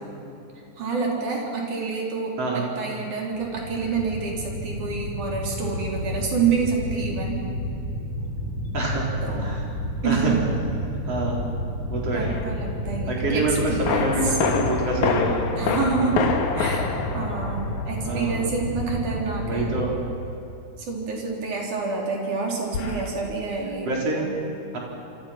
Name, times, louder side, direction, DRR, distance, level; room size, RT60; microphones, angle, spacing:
voice 1, 0.8-7.4 9.2-9.6 10.0-10.4 12.1-14.4 15.6-19.7 20.8-24.3, right 5 dB, 80° right, -1 dB, 5.2 m, -28 dB
voice 2, 2.4-2.7 8.7-9.0 9.4-9.6 10.0-10.3 11.1-11.5 11.9-12.4 13.1-15.4 18.1-18.4 19.4-20.0 22.8-23.1 23.9-24.2 24.7-24.8, right 2 dB, 55° right, -3 dB, 5.2 m, -26 dB
sound 1, 3.3-19.9, left 1 dB, 55° left, 4.5 m, -31 dB
sound 2, 12.2-12.5 13.9-18.3 22.7-23.1, left 6 dB, 80° left, 2.8 m, -27 dB
28.0 x 24.0 x 5.9 m, 2.9 s
omnidirectional pair, 3.4 m